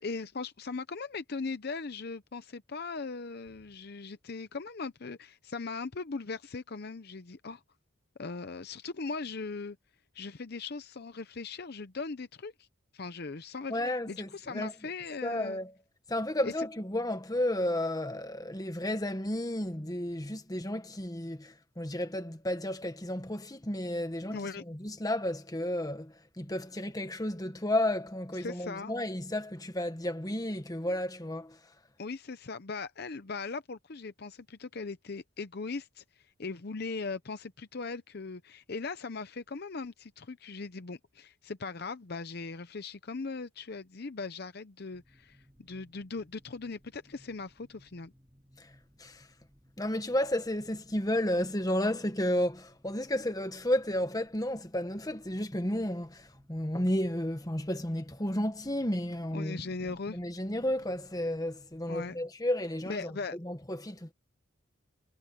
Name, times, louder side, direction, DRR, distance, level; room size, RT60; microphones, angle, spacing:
voice 1, 0.0-7.6 8.2-9.8 10.1-12.7 12.9-15.6 16.4-16.5 24.3-24.6 28.4-28.9 32.0-48.1 59.3-60.2 61.9-62.2 62.9-63.4, left 4 dB, 50° left, 0.7 m, -39 dB
voice 2, 13.7-14.7 15.2-15.7 16.1-24.4 24.7-31.6 48.6-48.7 49.0-49.2 49.8-59.6 60.1-63.1 63.4-64.1, left 1 dB, 20° left, 1.3 m, -32 dB
sound 1, 44.9-62.2, equal, 10° right, 4.0 m, -63 dB
head